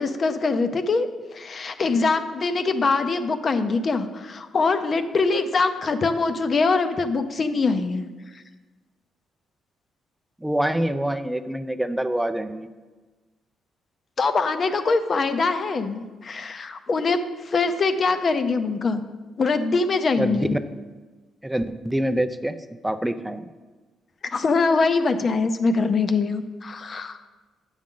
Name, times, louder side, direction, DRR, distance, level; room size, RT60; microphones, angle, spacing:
voice 1, 0.0-8.0 14.2-19.0 19.4-20.5 24.3-27.2, left 4 dB, 45° left, 9 dB, 0.6 m, -23 dB
voice 2, 10.4-12.7 20.2-20.6 21.4-22.6 22.8-23.5, right 1 dB, 5° right, 10 dB, 0.4 m, -25 dB
8.8 x 6.2 x 3.8 m, 1.3 s
cardioid pair, 90°, 0 cm